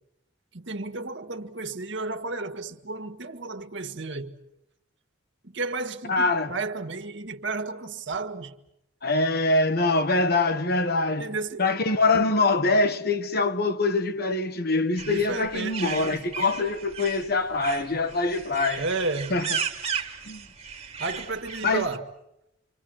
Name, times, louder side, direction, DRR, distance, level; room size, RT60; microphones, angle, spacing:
voice 1, 0.5-4.4 5.4-8.5 11.2-11.7 15.0-16.3 18.8-19.4 21.0-22.1, right 3 dB, 75° right, 1.8 m, -32 dB
voice 2, 6.1-6.5 9.0-11.3 11.6-18.9 19.3-19.5 20.3-20.4 21.6-21.9, left 3 dB, 55° left, 1.7 m, -24 dB
sound 1, 15.0-22.0, right 6 dB, 35° right, 2.7 m, -35 dB
27.5 x 26.0 x 7.8 m
head